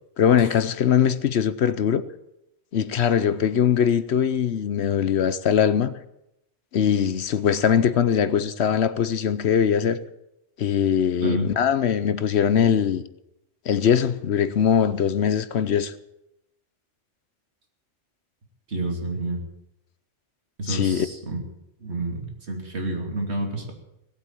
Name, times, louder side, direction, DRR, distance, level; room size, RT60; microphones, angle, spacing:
voice 1, 0.2-2.0 2.7-6.0 6.7-10.0 10.6-13.0 13.7-15.9 20.7-21.1, left 8 dB, 65° left, 1.0 m, -21 dB
voice 2, 18.7-19.4 20.6-21.4 21.8-23.7, right 2 dB, 60° right, 3.0 m, -29 dB
18.0 x 8.3 x 8.7 m
omnidirectional pair, 1.2 m